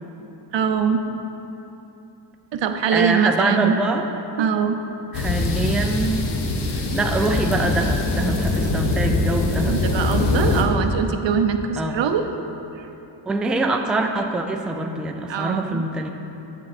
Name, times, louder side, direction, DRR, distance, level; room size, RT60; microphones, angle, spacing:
voice 1, 0.5-1.0 2.5-3.8 4.4-4.8 9.7-12.3 12.8-12.9 15.3-15.8, right 7 dB, 80° right, 6 dB, 0.7 m, -22 dB
voice 2, 2.9-4.1 5.1-6.2 6.7-10.1 11.8-12.1 13.3-16.1, right 2 dB, ahead, 3 dB, 0.3 m, -24 dB
sound 1, 5.1-10.6, left 2 dB, 65° left, 1.1 m, -22 dB
10.5 x 7.0 x 4.2 m, 3.0 s
wide cardioid pair, 155°, 44 cm